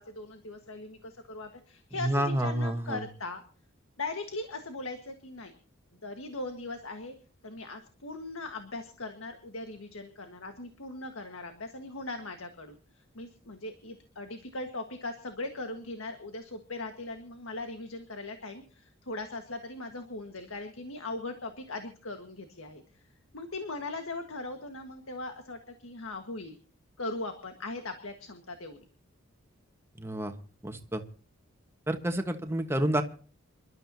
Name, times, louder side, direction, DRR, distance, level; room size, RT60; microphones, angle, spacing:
voice 1, 0.0-3.4 4.0-5.6 5.9-7.1 7.4-23.0 23.3-26.5 27.0-28.8, left 2 dB, 85° left, 6 dB, 1.6 m, -39 dB
voice 2, 2.0-3.0 30.0-30.3 30.6-31.0 31.9-33.0, right 1 dB, 10° right, 6 dB, 1.3 m, -29 dB
27.0 x 12.5 x 2.8 m, 0.39 s
head